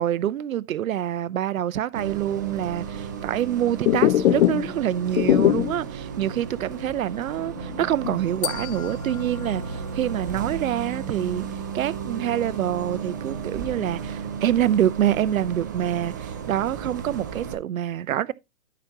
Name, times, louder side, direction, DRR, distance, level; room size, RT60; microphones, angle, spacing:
voice 1, 0.0-11.5 11.7-18.3, right 11 dB, 70° right, 0.7 m, -26 dB
Bus, 1.9-17.5, right 6 dB, 15° right, 0.3 m, -34 dB
sound 1, 3.8-4.8 5.0-5.9 6.3-6.4 6.7-6.9 7.4-8.8 9.1-9.8, left 13 dB, 50° left, 0.5 m, -22 dB
sound 2, 8.4-10.7, left 11 dB, 75° left, 0.8 m, -37 dB
11.5 x 6.0 x 2.9 m
hypercardioid pair, 135°, 42 cm